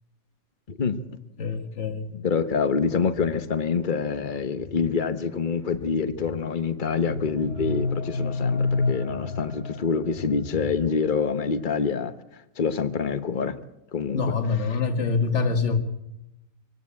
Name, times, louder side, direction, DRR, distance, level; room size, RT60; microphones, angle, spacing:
voice 1, 0.7-1.0 2.1-12.1 12.6-13.6 13.9-14.8, left 5 dB, 40° left, 11 dB, 1.2 m, -26 dB
voice 2, 1.4-2.1 14.1-15.8, left 4 dB, 55° left, 7 dB, 2.0 m, -25 dB
sound 1, 2.8-4.9 5.4-6.4 6.8-9.4 9.8-11.2, left 2 dB, 35° right, 1.3 m, -44 dB
sound 2, 6.6-10.6, left 3 dB, 90° left, 4.1 m, -29 dB
24.0 x 17.0 x 8.6 m, 0.88 s
omnidirectional pair, 1.4 m